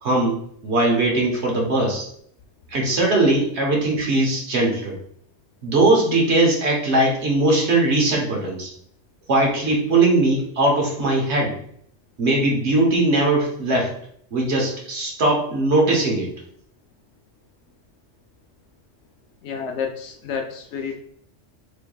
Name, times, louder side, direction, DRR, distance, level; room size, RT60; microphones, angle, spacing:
voice 1, 0.0-2.1 2.7-5.0 5.6-8.7 9.3-11.5 12.2-13.9 14.3-16.3, right 2 dB, 65° right, -1 dB, 1.2 m, -20 dB
voice 2, 19.4-20.9, left 6 dB, 70° left, 3 dB, 0.9 m, -29 dB
4.3 x 3.3 x 2.3 m, 0.65 s
omnidirectional pair, 1.2 m